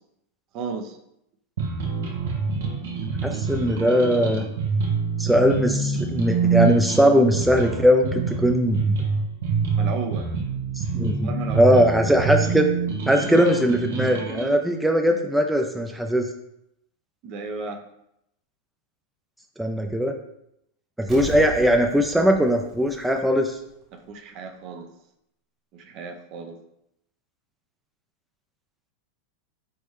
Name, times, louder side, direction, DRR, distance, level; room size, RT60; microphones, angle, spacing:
voice 1, 0.5-1.0 9.8-10.3 11.2-11.8 17.2-17.8 23.9-24.9 25.7-26.6, right 4 dB, 50° right, 5 dB, 0.6 m, -34 dB
sound 1, 1.6-14.5, right 5 dB, 75° right, 0.9 m, -26 dB
voice 2, 3.2-4.5 5.2-8.9 10.8-12.7 13.1-16.3 19.6-20.1 21.0-23.6, equal, 5° right, 3 dB, 0.4 m, -20 dB
Explosion, 21.1-23.7 24.0-24.1, right 1 dB, 20° right, 1.3 m, -38 dB
4.1 x 3.3 x 3.2 m, 0.80 s
hypercardioid pair, 110°, 0 cm